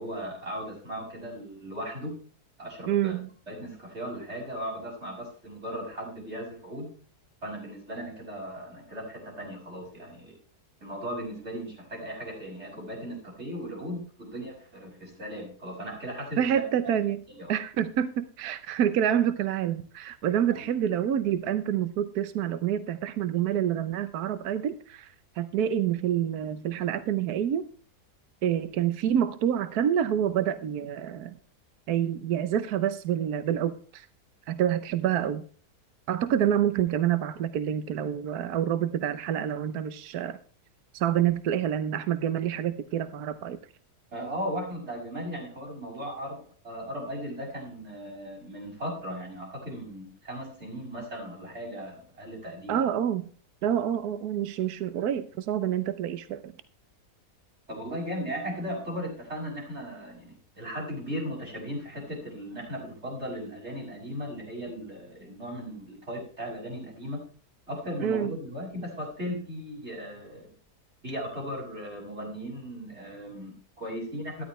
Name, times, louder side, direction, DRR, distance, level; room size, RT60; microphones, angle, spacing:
voice 1, 0.0-2.2 2.6-3.1 3.5-6.9 7.4-10.4 10.8-16.5 17.3-17.5 20.5-20.6 44.1-52.8 57.7-67.2 67.7-70.5 71.0-74.4, equal, 40° right, -1 dB, 6.4 m, -37 dB
voice 2, 2.9-3.3 16.4-17.2 17.5-27.7 28.4-31.4 31.9-34.1 34.5-35.4 36.1-40.4 40.9-43.6 52.7-53.3 53.6-56.5 68.0-68.3, right 10 dB, 75° right, 13 dB, 1.3 m, -27 dB
13.5 x 12.5 x 3.2 m, 0.41 s
omnidirectional pair, 1.7 m